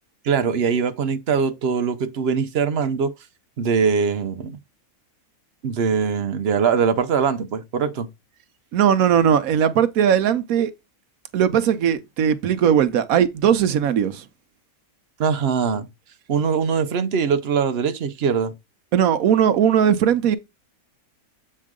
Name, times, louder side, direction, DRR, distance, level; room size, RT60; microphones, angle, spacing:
voice 1, 0.2-3.1 3.6-4.6 5.6-8.1 15.2-15.9 16.3-18.5, right 6 dB, 55° right, 0.9 m, -22 dB
voice 2, 8.7-10.7 11.3-14.2 18.9-20.4, right 9 dB, 75° right, 1.1 m, -18 dB
7.5 x 4.5 x 3.6 m
omnidirectional pair, 1.5 m